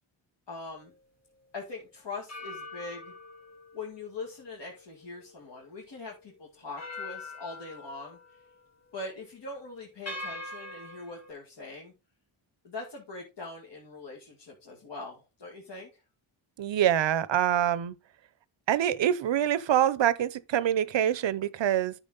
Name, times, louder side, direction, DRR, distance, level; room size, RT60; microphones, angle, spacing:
voice 1, 0.5-0.9 1.5-3.1 3.7-8.4 8.9-11.9 12.6-15.9, left 3 dB, 60° left, 2.2 m, -42 dB
sound 1, 0.8-1.0 2.3-5.7 6.1-6.2 6.8-8.6 8.9-9.2 10.1-11.3, left 2 dB, 35° left, 2.5 m, -44 dB
voice 2, 16.6-17.9 18.7-21.9, right 10 dB, 65° right, 0.7 m, -25 dB
9.0 x 6.1 x 3.9 m
cardioid pair, 70°, 48 cm